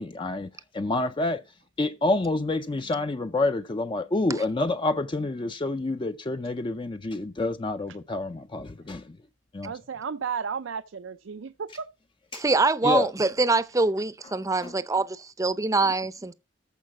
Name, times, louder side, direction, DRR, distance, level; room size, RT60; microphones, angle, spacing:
voice 1, 0.0-1.4 1.8-9.2 9.5-9.7 12.3-12.4 12.8-13.1 14.6-14.7, left 2 dB, 25° left, 0.5 m, -28 dB
voice 2, 9.6-11.9, right 6 dB, 80° right, 0.5 m, -33 dB
voice 3, 12.3-16.3, right 3 dB, 15° right, 0.6 m, -24 dB
14.0 x 5.0 x 5.9 m
head